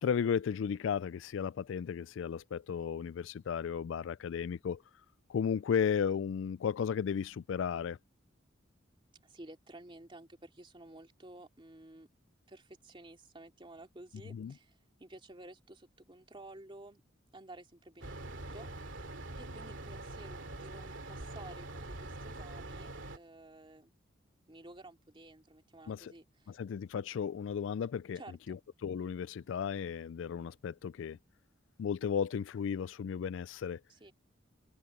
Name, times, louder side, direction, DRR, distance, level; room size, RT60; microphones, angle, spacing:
voice 1, 0.0-4.8 5.3-8.0 14.3-14.5 25.9-26.1 26.5-28.2 28.5-31.2 31.8-33.8, left 7 dB, 70° left, 0.3 m, -34 dB
voice 2, 9.2-12.1 12.5-17.0 17.3-18.7 19.4-23.9 24.5-26.6 28.1-28.6 33.9-34.1, right 2 dB, 25° right, 2.6 m, -53 dB
sound 1, 18.0-23.2, right 2 dB, 70° right, 2.7 m, -44 dB
head